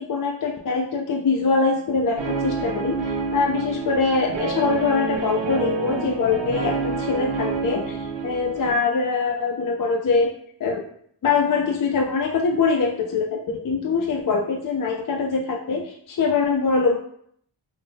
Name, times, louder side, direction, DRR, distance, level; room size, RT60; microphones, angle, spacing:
voice 1, 0.0-10.3 10.6-10.8 11.2-17.0, left 4 dB, 45° left, 1 dB, 0.4 m, -23 dB
Guitar, 2.2-8.7, right 4 dB, 60° right, 0.6 m, -28 dB
3.9 x 2.1 x 2.6 m, 0.66 s
cardioid pair, 60°, 50 cm